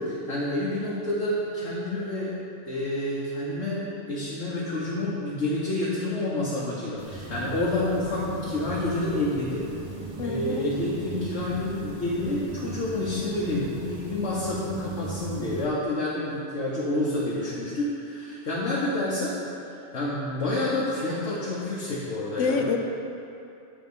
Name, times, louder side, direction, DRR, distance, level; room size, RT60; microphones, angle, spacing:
voice 1, 0.0-2.3 2.6-9.6 10.2-19.4 19.7-22.6, left 1 dB, 70° left, -7 dB, 1.2 m, -29 dB
sound 1, 7.0-15.7, right 3 dB, 50° right, 0.3 m, -38 dB
voice 2, 10.2-10.7 22.4-22.8, left 5 dB, 90° left, 3 dB, 1.0 m, -26 dB
8.0 x 3.6 x 5.4 m, 2.7 s
omnidirectional pair, 1.2 m